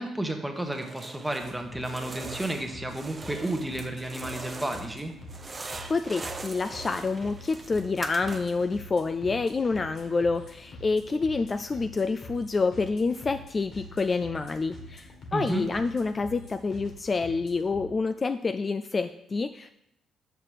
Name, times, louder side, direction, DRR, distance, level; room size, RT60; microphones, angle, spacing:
voice 1, 0.0-5.1 15.3-15.6, right 1 dB, 5° right, 4 dB, 1.1 m, -32 dB
sound 1, 0.7-1.5 1.8-5.0 5.3-8.7, right 3 dB, 30° right, 0.6 m, -41 dB
sound 2, 1.4-17.9, left 1 dB, 55° left, 1.7 m, -46 dB
voice 2, 5.9-19.7, left 4 dB, 30° left, 9 dB, 0.3 m, -28 dB
6.5 x 5.8 x 4.7 m, 0.78 s
cardioid pair, 90°, 0 cm